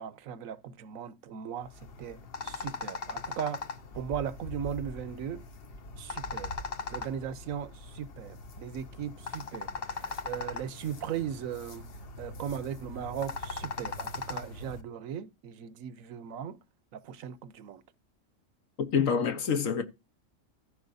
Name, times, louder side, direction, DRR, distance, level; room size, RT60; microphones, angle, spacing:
voice 1, 0.0-1.7 2.0-3.6 3.9-5.5 6.0-6.5 6.9-11.9 12.2-16.6 16.9-17.8, right 8 dB, 85° right, 1.1 m, -38 dB
sound 1, 1.6-14.8, left 3 dB, 50° left, 1.0 m, -40 dB
voice 2, 18.8-19.8, left 6 dB, 75° left, 1.4 m, -27 dB
14.5 x 6.0 x 2.6 m
omnidirectional pair, 1.4 m